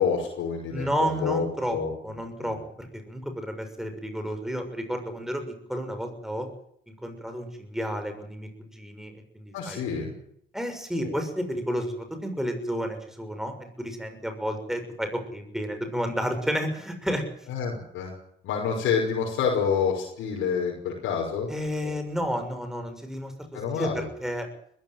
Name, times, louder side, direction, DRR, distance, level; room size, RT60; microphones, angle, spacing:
voice 1, 0.0-1.9 2.4-2.5 9.5-10.1 11.0-11.2 17.5-18.1 18.4-21.5 21.8-22.0 23.5-24.1, left 6 dB, 90° left, -2 dB, 5.9 m, -28 dB
voice 2, 0.7-1.8 2.0-6.5 6.9-9.8 10.5-17.2 21.5-24.5, equal, ahead, 6 dB, 6.6 m, -31 dB
21.0 x 15.5 x 9.3 m, 0.68 s
cardioid pair, 90°, 20 cm